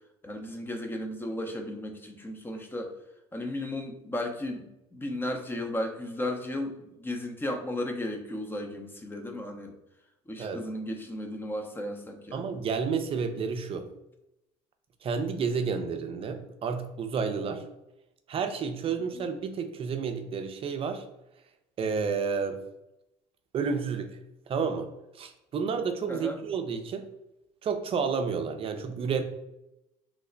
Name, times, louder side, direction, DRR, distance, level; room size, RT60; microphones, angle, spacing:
voice 1, 0.2-2.9 3.3-9.7 10.3-12.6 19.1-19.2 26.1-26.4, left 1 dB, 15° left, 4 dB, 0.6 m, -35 dB
voice 2, 12.3-13.9 15.0-17.6 18.3-21.0 21.8-22.6 23.5-24.2 24.5-24.9 25.1-27.1 27.6-29.2, right 5 dB, 40° right, 7 dB, 0.5 m, -30 dB
3.1 x 2.0 x 3.8 m, 0.90 s
supercardioid pair, 85°, 14 cm